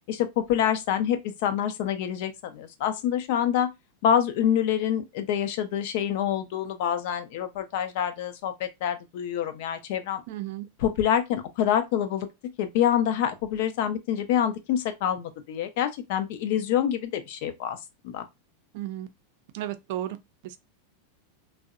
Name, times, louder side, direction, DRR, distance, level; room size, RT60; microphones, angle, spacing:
voice 1, 0.1-3.7 4.0-10.2 10.8-12.3 12.6-17.8 18.0-18.3, left 9 dB, 65° left, 0.5 m, -26 dB
voice 2, 10.3-10.7 18.7-19.1 19.5-20.2 20.4-20.6, right 13 dB, 65° right, 0.4 m, -33 dB
2.6 x 2.0 x 2.4 m
hypercardioid pair, 115°, 0 cm